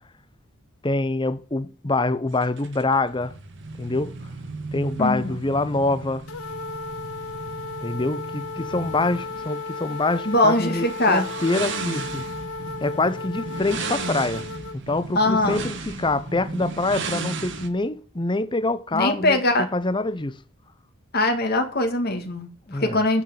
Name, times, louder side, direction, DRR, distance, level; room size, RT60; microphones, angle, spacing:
voice 1, 0.8-3.3 3.8-4.1 4.7-6.3 7.8-12.3 12.8-14.4 14.7-20.4 22.7-23.0, left 2 dB, 20° left, 0.7 m, -25 dB
sound 1, 2.3-17.7, right 3 dB, 60° right, 1.5 m, -35 dB
voice 2, 5.0-5.4 10.3-11.3 15.2-15.6 18.9-19.7 21.1-23.2, left 2 dB, 45° left, 2.0 m, -22 dB
sound 2, 6.3-14.8, left 3 dB, 85° left, 0.8 m, -35 dB
9.8 x 6.6 x 7.3 m
head